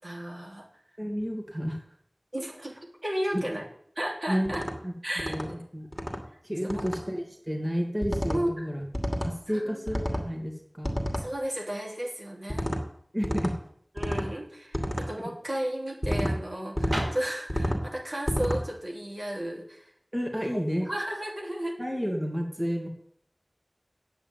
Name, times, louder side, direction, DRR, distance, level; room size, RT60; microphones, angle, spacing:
voice 1, 0.0-0.6 2.3-3.6 3.9-4.6 5.0-5.3 6.6-6.9 8.3-8.7 9.5-9.8 11.1-12.7 13.9-19.9 20.5-20.6 20.8-21.8, equal, 70° right, -1 dB, 3.4 m, -33 dB
voice 2, 1.0-1.8 3.3-3.4 4.3-4.5 4.8-5.9 6.4-8.8 9.2-11.1 13.1-13.5 20.1-20.9 21.8-22.9, equal, 25° right, 2 dB, 2.5 m, -31 dB
sound 1, 4.5-4.7 5.2-5.5 5.9-6.2 6.7-7.0 8.0-8.4 8.9-9.3 9.9-10.3 10.8-11.3 12.5-12.8 13.2-13.5 14.0-14.3 14.7-15.1 16.0-16.4 16.8-17.1 17.5-17.8 18.3-18.6, equal, 5° left, 2.6 m, -29 dB
sound 2, 16.8-20.6, equal, 90° right, 6.0 m, -41 dB
10.0 x 8.6 x 9.1 m, 0.67 s
wide cardioid pair, 40°, 0 cm